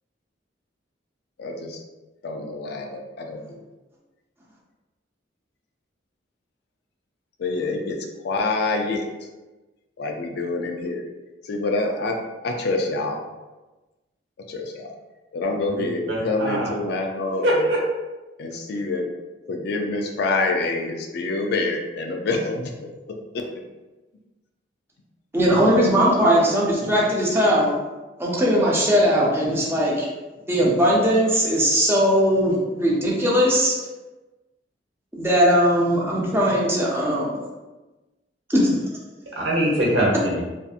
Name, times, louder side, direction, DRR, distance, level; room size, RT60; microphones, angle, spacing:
voice 1, 1.4-1.8 2.2-3.6 7.4-8.0 8.2-9.0 10.0-11.0 11.4-12.2 12.4-13.2 14.5-14.9 15.3-17.7 18.4-19.1 19.5-22.7 23.3-23.5, left 3 dB, 60° left, 2 dB, 0.4 m, -26 dB
voice 2, 16.1-16.7 17.4-17.8 39.4-40.4, right 1 dB, 75° right, -4 dB, 0.9 m, -22 dB
voice 3, 25.3-27.7 28.2-30.1 30.5-33.8 35.1-37.3 38.5-38.8, equal, 15° right, -5 dB, 0.6 m, -19 dB
2.6 x 2.5 x 2.4 m, 1.1 s
head